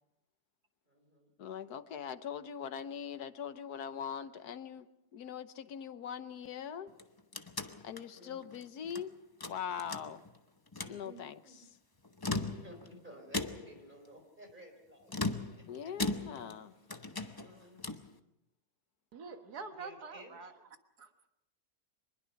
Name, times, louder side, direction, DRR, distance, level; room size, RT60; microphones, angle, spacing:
voice 1, 0.9-1.3 8.1-8.4 10.7-11.7 12.5-15.9 16.5-16.9 17.3-18.0 19.6-20.5, equal, 30° right, 4 dB, 4.4 m, -55 dB
voice 2, 1.4-4.9 5.1-6.9 7.8-9.2 9.4-10.2 10.9-11.4 15.7-16.7, left 8 dB, 80° left, 12 dB, 1.5 m, -41 dB
sound 1, 6.9-9.1 9.4-10.4 10.7-11.0 12.0-12.9 13.3-13.9 15.1-16.6 16.9-18.1, left 2 dB, 20° left, 0.8 m, -38 dB
voice 3, 19.1-20.5 21.0-21.3, right 4 dB, 85° right, 7 dB, 1.9 m, -46 dB
24.5 x 21.0 x 5.8 m, 0.88 s
omnidirectional pair, 1.6 m